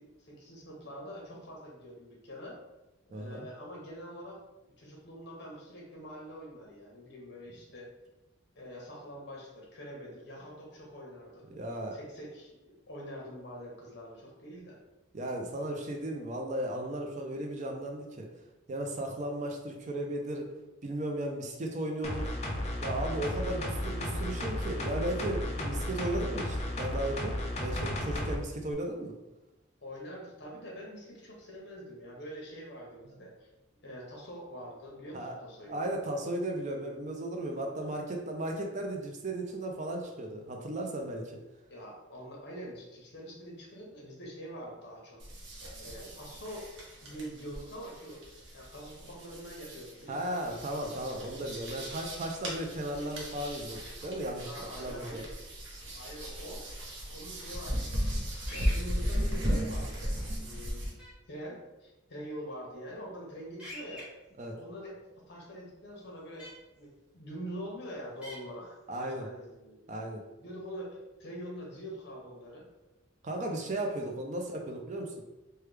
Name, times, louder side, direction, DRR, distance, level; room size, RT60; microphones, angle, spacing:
voice 1, 0.0-2.6 3.1-4.4 4.8-7.9 8.6-11.4 11.9-14.8 29.8-33.5 33.8-35.8 41.7-45.2 45.7-46.7 47.0-50.4 54.4-55.4 55.9-56.8 57.1-58.1 58.5-60.0 60.4-60.8 61.3-64.1 64.5-66.5 66.8-69.8 70.4-72.7, equal, 60° left, -2 dB, 0.9 m, -45 dB
voice 2, 3.1-3.5 11.5-12.0 15.1-18.3 18.7-20.5 20.8-22.3 22.8-29.2 35.1-35.4 35.7-41.4 50.1-55.2 64.4-64.6 68.9-69.3 69.9-70.2 73.2-75.1, right 1 dB, 40° right, 2 dB, 0.4 m, -35 dB
sound 1, 22.0-28.4 28.7-28.8, left 1 dB, 35° left, 0.4 m, -34 dB
sound 2, 45.2-60.9, equal, 75° right, 0.8 m, -36 dB
sound 3, 58.5-58.8 61.0-61.1 63.6-64.0 66.4-66.5 68.2-68.4, equal, 5° right, 1.0 m, -43 dB
3.2 x 2.2 x 3.2 m, 1.0 s
head